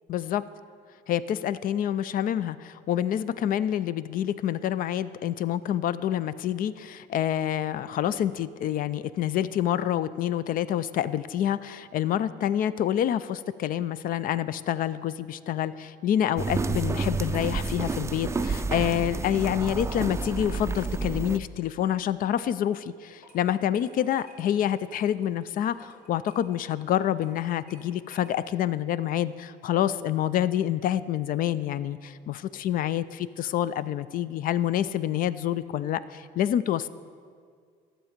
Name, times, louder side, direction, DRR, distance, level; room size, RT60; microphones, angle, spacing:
voice 1, 0.1-0.4 1.1-36.9, left 10 dB, 55° left, 16 dB, 0.4 m, -27 dB
sound 1, 16.4-21.4, right 4 dB, 15° right, 0.4 m, -30 dB
sound 2, 23.1-28.6, left 2 dB, 70° left, 2.8 m, -54 dB
12.5 x 7.4 x 5.1 m, 2.1 s
cardioid pair, 110°, 17 cm